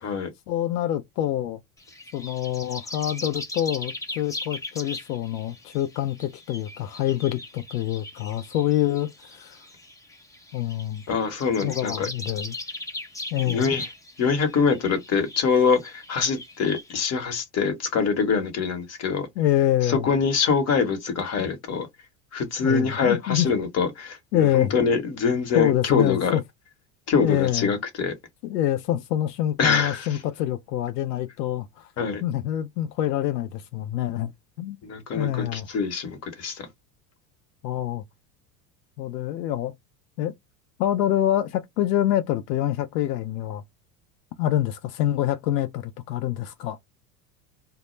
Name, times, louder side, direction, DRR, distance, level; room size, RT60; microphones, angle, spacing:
voice 1, 0.5-1.6 2.1-9.6 10.5-11.0 11.6-12.6 13.3-13.7 19.4-20.1 22.6-23.5 24.3-24.7 25.5-26.4 27.2-27.7 28.4-31.9 32.2-34.3 34.6-34.8 35.2-35.7 37.6-38.0 39.0-39.7 40.2-40.3 40.8-43.6 44.4-46.8, left 12 dB, 85° left, 0.5 m, -26 dB
sound 1, 1.8-16.9, left 2 dB, 5° left, 0.5 m, -39 dB
voice 2, 11.1-12.1 13.4-13.9 14.2-19.3 19.8-21.9 22.3-26.4 27.1-28.1 29.6-30.2 32.0-32.2 34.8-36.7, left 5 dB, 35° left, 1.0 m, -24 dB
2.1 x 2.0 x 3.0 m
hypercardioid pair, 90°, 47 cm